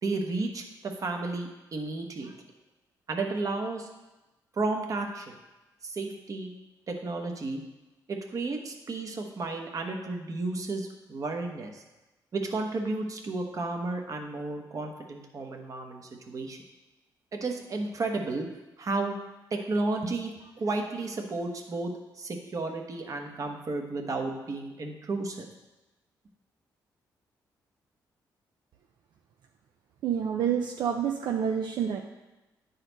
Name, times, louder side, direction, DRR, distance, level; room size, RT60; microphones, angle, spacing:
voice 1, 0.0-2.3 3.1-3.9 4.5-5.4 5.8-6.5 6.9-7.6 8.1-11.8 12.3-16.6 17.4-18.5 18.8-19.1 19.5-25.4, right 3 dB, 45° right, 3 dB, 1.1 m, -32 dB
voice 2, 30.0-32.0, right 8 dB, 75° right, 3 dB, 0.5 m, -28 dB
9.9 x 4.2 x 4.0 m, 1.1 s
cardioid pair, 85°, 8 cm